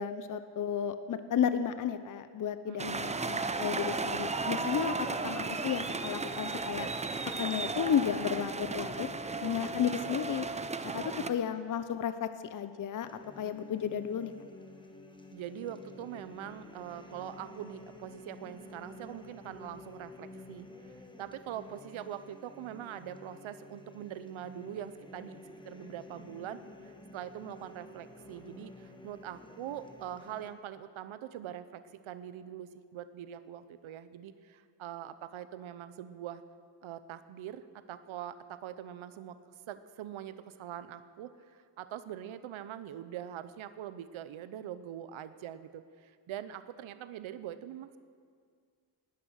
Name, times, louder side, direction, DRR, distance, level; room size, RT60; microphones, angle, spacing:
voice 1, 0.0-6.9 7.4-9.1 9.4-10.5 10.9-13.1 13.4-14.3, left 8 dB, 45° left, 11 dB, 0.7 m, -33 dB
voice 2, 2.7-3.0 11.1-11.4 15.3-25.4 25.6-36.4 36.8-48.0, right 10 dB, 90° right, 13 dB, 0.8 m, -43 dB
sound 1, 2.8-11.3, right 3 dB, 15° right, 0.5 m, -35 dB
sound 2, 13.0-30.5, left 2 dB, 10° left, 1.1 m, -51 dB
19.0 x 12.0 x 6.4 m, 2.1 s
wide cardioid pair, 155°, 46 cm